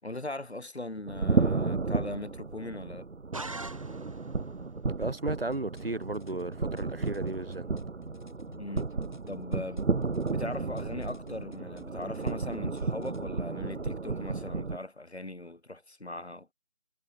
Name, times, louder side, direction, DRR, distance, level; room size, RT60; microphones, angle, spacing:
voice 1, 0.0-3.1 8.6-8.9 9.3-9.9 10.3-16.5, left 2 dB, 65° left, 5.3 m, -40 dB
sound 1, 1.1-14.8, right 4 dB, 80° right, 1.1 m, -33 dB
sound 2, 3.3-4.4, right 2 dB, 30° right, 2.3 m, -41 dB
voice 2, 5.0-7.7, right 2 dB, 55° right, 4.0 m, -34 dB
sound 3, 5.3-13.3, left 2 dB, 40° left, 6.2 m, -54 dB
figure-of-eight pair, 170°, 35 cm